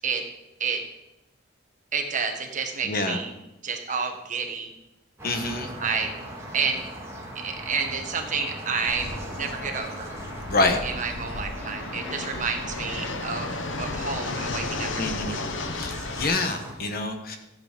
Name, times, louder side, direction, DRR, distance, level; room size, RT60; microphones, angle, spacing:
voice 1, 1.9-3.3 3.6-4.7 5.8-6.1 6.5-6.8 7.3-10.1 10.8-15.4, right 5 dB, 40° right, 4 dB, 1.6 m, -30 dB
voice 2, 2.8-3.2 5.2-5.7 10.5-10.8 15.0-15.4 15.7-17.4, left 2 dB, 45° left, 6 dB, 1.4 m, -26 dB
sound 1, 5.2-16.8, right 1 dB, 15° right, 2.0 m, -39 dB
Fixed-wing aircraft airplane, 8.9-16.3, left 3 dB, 65° left, 1.0 m, -34 dB
14.5 x 8.2 x 5.2 m, 0.93 s
head